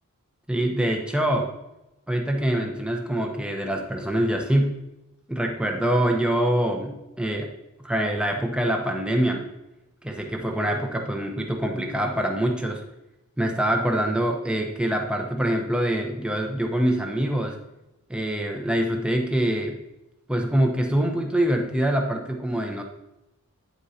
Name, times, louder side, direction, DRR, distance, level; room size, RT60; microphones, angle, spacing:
voice 1, 0.5-1.5 2.1-4.8 5.3-7.5 7.8-9.5 10.0-12.8 13.4-17.6 18.1-19.8 20.3-22.8, right 1 dB, 5° right, 2 dB, 0.8 m, -24 dB
9.4 x 8.0 x 2.8 m, 0.93 s
head